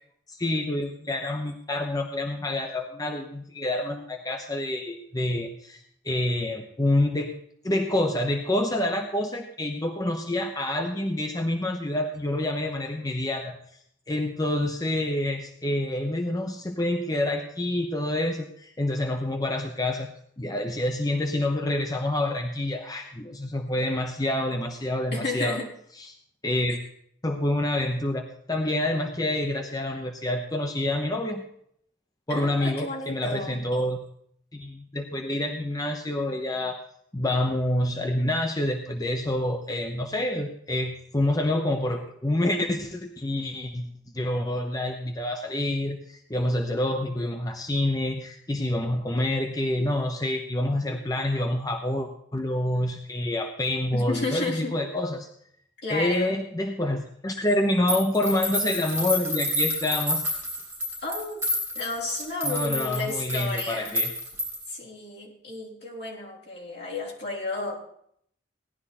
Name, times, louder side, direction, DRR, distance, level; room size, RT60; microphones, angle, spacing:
voice 1, 0.3-7.3 7.6-13.6 14.1-20.1 20.4-25.6 26.0-26.1 26.4-26.8 27.2-31.4 32.3-34.0 34.5-36.8 37.1-43.9 44.1-55.3 55.9-60.3 62.4-64.1, left 1 dB, 20° left, 4 dB, 0.8 m, -27 dB
voice 2, 25.1-25.7 32.3-33.6 53.9-54.7 55.8-56.4 61.0-61.4 61.7-64.0 64.7-67.8, left 2 dB, 60° left, -3 dB, 3.9 m, -32 dB
sound 1, 57.9-64.7, equal, 10° right, 5.3 m, -29 dB
17.5 x 11.5 x 4.2 m, 0.69 s
head